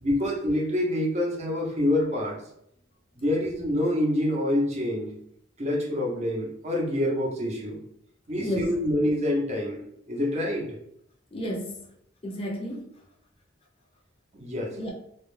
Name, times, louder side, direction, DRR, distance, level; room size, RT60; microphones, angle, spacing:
voice 1, 0.0-2.4 3.2-5.1 5.6-7.8 8.3-10.7 14.3-14.8, left 1 dB, 35° right, -3 dB, 0.6 m, -26 dB
voice 2, 8.4-8.7 11.3-11.9 12.2-13.0 14.8-14.9, equal, 30° left, -1 dB, 0.5 m, -32 dB
2.2 x 2.1 x 3.1 m, 0.74 s
head